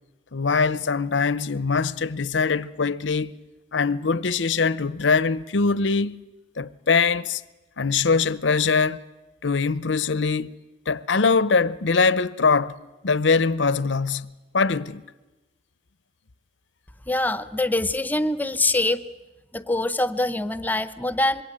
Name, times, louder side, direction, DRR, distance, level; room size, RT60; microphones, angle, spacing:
voice 1, 0.3-3.3 3.7-6.2 6.6-7.4 7.8-9.0 9.4-10.5 10.9-12.8 13.0-15.0, left 4 dB, 75° left, 0.8 m, -22 dB
voice 2, 17.1-19.0 19.5-21.4, left 2 dB, 10° left, 0.9 m, -24 dB
25.5 x 22.5 x 8.9 m
head